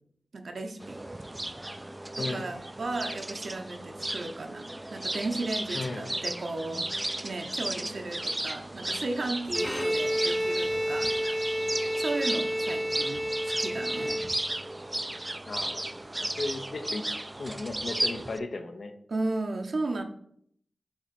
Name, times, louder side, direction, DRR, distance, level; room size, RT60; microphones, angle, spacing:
voice 1, 0.3-1.1 2.2-6.8 7.2-11.6 12.0-14.3 19.1-20.0, right 2 dB, 70° right, 5 dB, 0.9 m, -35 dB
sound 1, 0.8-18.4, right 1 dB, 20° right, 0.4 m, -34 dB
voice 2, 2.2-2.5 5.7-6.2 15.5-15.9 16.2-17.1 17.4-19.0, left 3 dB, 65° left, 7 dB, 0.8 m, -35 dB
Bowed string instrument, 9.5-14.7, equal, ahead, 0.8 m, -30 dB
8.9 x 3.0 x 4.3 m, 0.66 s
cardioid pair, 55°, 0 cm